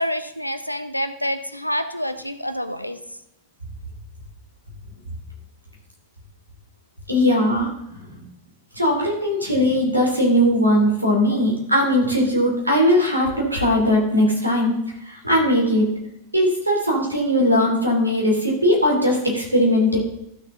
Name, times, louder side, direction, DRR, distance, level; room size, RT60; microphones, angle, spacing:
voice 1, 0.0-3.0, equal, 90° left, 10 dB, 0.7 m, -27 dB
voice 2, 7.1-8.2 8.7-14.7 15.0-15.9 16.3-20.0, equal, 85° right, -1 dB, 3.3 m, -19 dB
14.0 x 6.7 x 3.8 m, 0.81 s
figure-of-eight pair, 90°, 0 cm